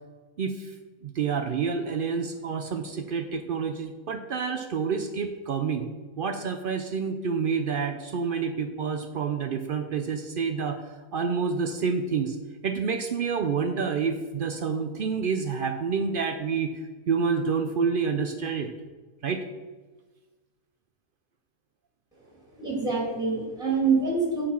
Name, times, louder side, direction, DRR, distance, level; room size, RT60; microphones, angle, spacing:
voice 1, 1.0-5.9 6.2-10.8 11.1-12.4 12.6-16.7 17.1-18.7 19.2-19.4, right 5 dB, 70° right, 6 dB, 0.5 m, -28 dB
voice 2, 22.6-24.4, right 4 dB, 5° right, -4 dB, 2.1 m, -25 dB
8.8 x 4.2 x 5.5 m, 1.3 s
omnidirectional pair, 1.5 m